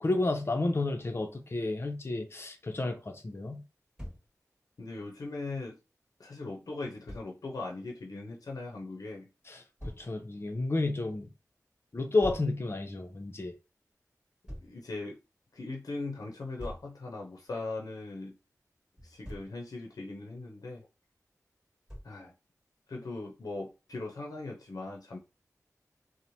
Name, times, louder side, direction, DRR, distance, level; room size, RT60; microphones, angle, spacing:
voice 1, 0.0-3.6 9.5-11.3 11.9-13.6, left 2 dB, 40° left, 0.5 m, -31 dB
Thump thud, 4.0-4.3 7.1-7.3 9.8-10.1 12.2-12.5 14.5-14.7 16.6-16.9 19.0-19.6 21.9-22.2, equal, 10° right, 1.2 m, -42 dB
voice 2, 4.8-5.8 6.2-9.3 14.6-15.2 15.5-18.4 19.0-20.8 22.0-22.3 22.9-25.2, left 2 dB, 85° left, 0.6 m, -39 dB
3.0 x 2.1 x 2.6 m
wide cardioid pair, 65°, 6 cm